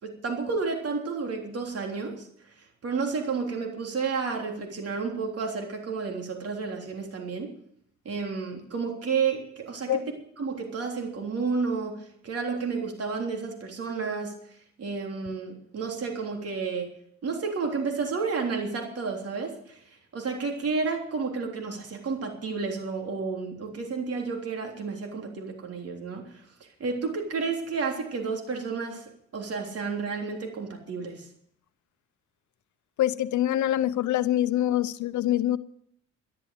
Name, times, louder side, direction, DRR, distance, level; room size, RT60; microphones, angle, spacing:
voice 1, 0.0-7.5 8.1-10.0 10.4-16.9 17.2-31.3, right 4 dB, 50° right, 3.4 m, -31 dB
voice 2, 33.0-35.6, left 12 dB, 70° left, 0.8 m, -25 dB
12.5 x 11.0 x 7.6 m
cardioid pair, 90°, 30 cm